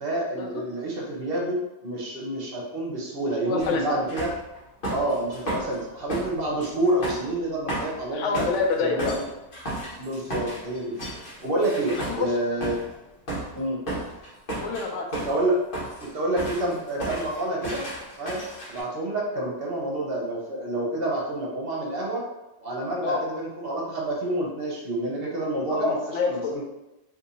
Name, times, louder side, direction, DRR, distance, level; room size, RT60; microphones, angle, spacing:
voice 1, 0.0-4.3 4.9-8.4 8.8-9.2 10.0-10.9 11.4-12.8 13.5-13.8 15.2-15.6 16.0-17.8 18.2-18.4 18.7-22.2 22.6-26.0 26.3-26.6, right 1 dB, 60° right, -2 dB, 1.0 m, -28 dB
voice 2, 3.5-3.8 8.1-9.2 11.9-12.3 14.6-15.1 23.0-23.2 25.7-26.6, left 4 dB, 90° left, 2 dB, 0.9 m, -27 dB
sound 1, 3.6-3.8 4.1-5.8 6.1-12.9 13.3-13.5 13.9-15.4 15.7-16.1 16.4-18.8, right 1 dB, 50° left, 1.2 m, -33 dB
2.7 x 2.6 x 4.0 m, 0.98 s
omnidirectional pair, 1.2 m